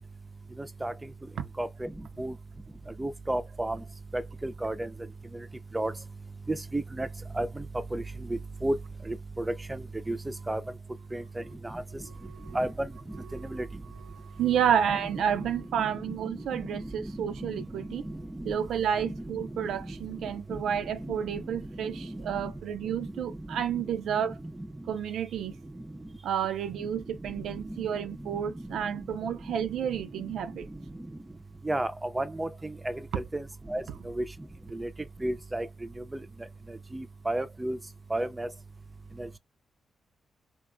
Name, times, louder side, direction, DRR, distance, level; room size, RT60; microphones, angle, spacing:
voice 1, 1.6-1.9 2.2-2.3 3.0-3.8 4.1-4.7 5.7-5.9 6.7-7.1 7.4-7.5 7.9-8.0 8.6-8.7 9.1-9.2 10.1-10.2 10.5-10.6 11.1-11.2 12.5-12.7 13.5-13.6 17.4-17.5 19.0-19.1 31.7-31.9 32.1-32.5 32.9-33.0 33.3-33.4 33.7-33.8 34.2-34.3 34.8-34.9 35.2-35.7 36.9-37.8 38.1-38.5, right 1 dB, 20° right, 0.4 m, -30 dB
voice 2, 12.0-12.6 13.3-13.5 14.1-18.1 18.4-24.4 24.9-25.6 26.2-30.7, right 8 dB, 80° right, 0.4 m, -30 dB
2.8 x 2.3 x 2.4 m
supercardioid pair, 55°, 0 cm